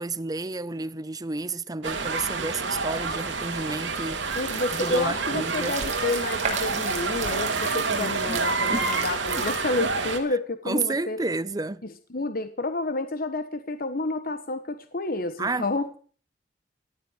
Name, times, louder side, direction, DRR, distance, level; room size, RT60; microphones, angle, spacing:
voice 1, 0.0-4.4 4.7-5.8 8.0-8.4 8.7-8.9 10.6-11.8 15.4-15.7, right 3 dB, 20° right, 0.6 m, -31 dB
sound 1, 1.8-10.2, right 4 dB, 75° right, 2.8 m, -28 dB
voice 2, 4.3-11.2 11.8-15.9, left 2 dB, 50° left, 1.2 m, -29 dB
sound 2, 4.3-9.9, right 5 dB, 40° right, 4.6 m, -36 dB
17.5 x 12.0 x 6.4 m
head